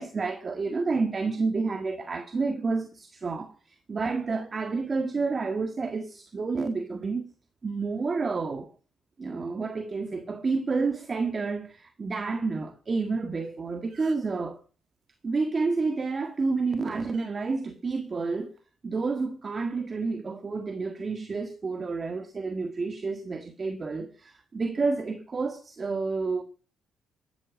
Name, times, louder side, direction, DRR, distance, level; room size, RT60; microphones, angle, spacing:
voice 1, 0.0-7.3 7.6-8.7 9.2-14.6 15.2-18.6 18.8-26.4, right 4 dB, 35° right, 1.7 m, -29 dB
sound 1, 13.5-13.6 13.7-14.4 16.0-16.3 17.1-17.3 18.3-18.6, right 5 dB, 60° right, 4.7 m, -54 dB
15.0 x 12.5 x 6.2 m
cardioid pair, 90°, 0 cm